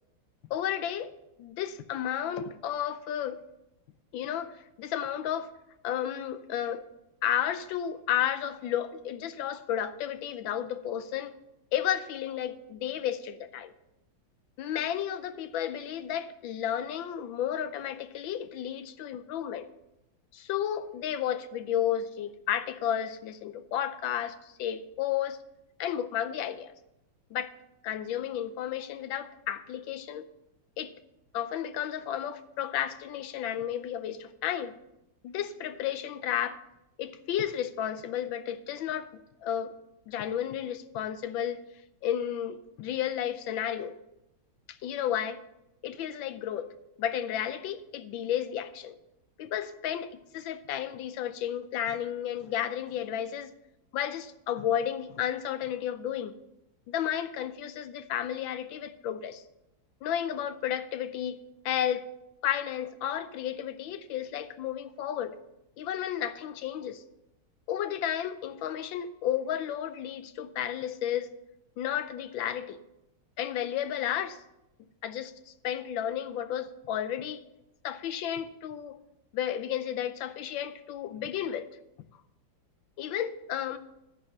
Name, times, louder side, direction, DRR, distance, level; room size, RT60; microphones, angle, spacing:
voice 1, 0.5-1.1 1.4-3.4 4.1-5.5 5.8-6.8 7.2-11.3 11.7-13.7 14.6-19.7 20.3-25.4 25.8-26.7 27.3-27.5 27.8-30.3 30.8-30.9 31.3-34.7 35.2-36.6 37.0-39.1 39.4-39.7 40.1-41.6 42.0-43.9 44.7-45.4 45.8-46.7 47.0-49.0 49.4-53.5 53.9-56.3 56.9-59.4 60.0-61.4 61.6-62.1 62.4-65.3 65.8-67.0 67.7-71.3 71.8-72.8 73.4-74.4 75.0-77.4 77.8-79.0 79.3-81.7 83.0-83.8, left 10 dB, 85° left, 11 dB, 1.4 m, -32 dB
13.5 x 4.8 x 7.1 m, 0.89 s
omnidirectional pair, 2.1 m